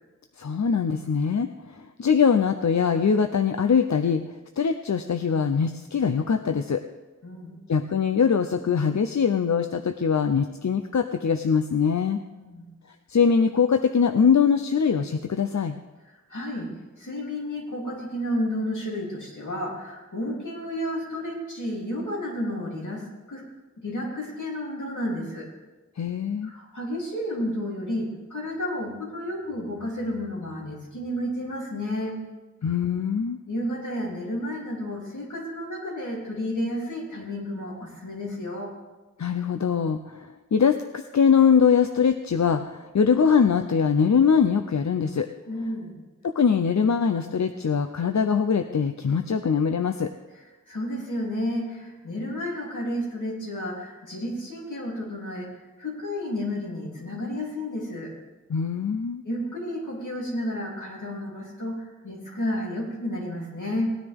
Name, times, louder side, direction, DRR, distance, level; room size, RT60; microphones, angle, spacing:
voice 1, 0.4-4.2 4.6-6.8 7.7-12.2 13.1-15.8 26.0-26.5 32.6-33.4 39.2-45.3 46.2-50.1 58.5-59.2, left 6 dB, 65° left, 7 dB, 0.6 m, -22 dB
voice 2, 7.2-7.6 12.4-12.7 16.0-23.4 23.8-25.5 26.4-32.2 33.5-38.7 45.5-46.0 50.7-55.5 55.8-58.1 59.2-64.0, left 1 dB, 80° left, -4 dB, 3.2 m, -31 dB
18.0 x 9.9 x 3.6 m, 1.2 s
wide cardioid pair, 50°, 30 cm